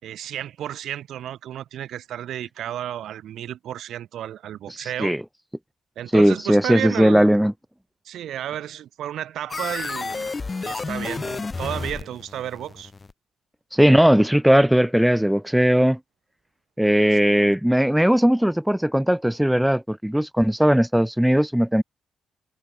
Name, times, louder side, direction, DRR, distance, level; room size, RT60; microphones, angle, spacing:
voice 1, 0.0-5.2 5.9-7.3 8.0-10.3 10.6-12.9 17.1-17.5, right 11 dB, 75° right, 5.0 m, -32 dB
voice 2, 4.7-5.2 6.1-7.5 13.7-16.0 16.8-21.8, equal, 5° right, 0.6 m, -18 dB
sound 1, 9.5-13.1, left 4 dB, 25° left, 3.2 m, -31 dB
cardioid pair, 90°, 0 cm